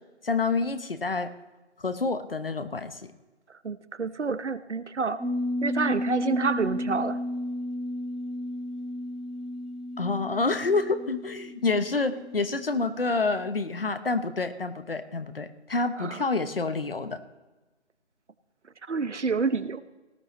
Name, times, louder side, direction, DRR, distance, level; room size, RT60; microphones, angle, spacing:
voice 1, 0.2-1.3 1.8-3.1 10.0-17.2, left 3 dB, 55° left, 11 dB, 1.0 m, -28 dB
voice 2, 3.6-5.2 5.6-7.2 16.0-16.2 18.9-19.8, right 4 dB, 85° right, 14 dB, 1.0 m, -28 dB
sound 1, 5.2-13.5 13.8-13.9, left 1 dB, ahead, 0.5 m, -33 dB
18.5 x 12.0 x 3.1 m, 1.2 s
figure-of-eight pair, 180°, 34 cm